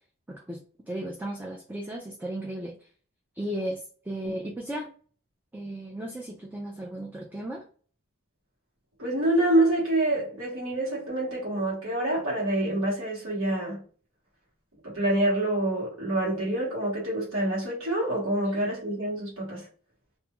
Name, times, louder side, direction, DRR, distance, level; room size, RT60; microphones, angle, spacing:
voice 1, 0.3-2.8 3.3-4.9 5.5-7.6, right 1 dB, 10° right, 0.3 m, -35 dB
voice 2, 9.0-13.8 14.8-19.7, right 1 dB, 75° right, 1.3 m, -26 dB
2.9 x 2.5 x 2.3 m
head